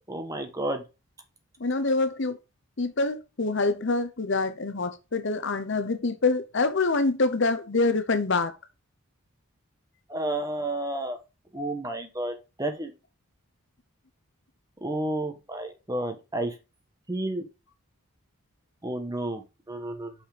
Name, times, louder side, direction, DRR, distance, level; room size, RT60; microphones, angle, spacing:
voice 1, 0.1-0.8 10.1-11.2 11.5-12.9 14.8-16.5 17.1-17.4 18.8-20.1, right 1 dB, 15° right, 1.3 m, -31 dB
voice 2, 1.6-2.4 2.8-8.5, left 3 dB, 55° left, 0.9 m, -25 dB
6.0 x 5.5 x 5.0 m
head